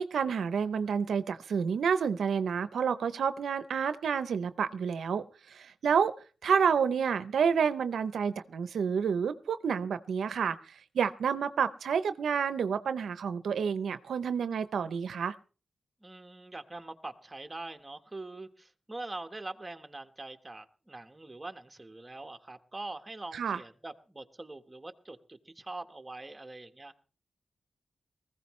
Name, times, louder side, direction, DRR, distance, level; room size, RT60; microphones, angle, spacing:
voice 1, 0.0-6.1 6.4-15.3 23.3-23.6, right 6 dB, 90° right, 12 dB, 0.7 m, -29 dB
voice 2, 16.0-26.9, right 2 dB, 20° right, 7 dB, 1.4 m, -43 dB
19.5 x 15.5 x 3.2 m, 0.36 s
wide cardioid pair, 95°, 0 cm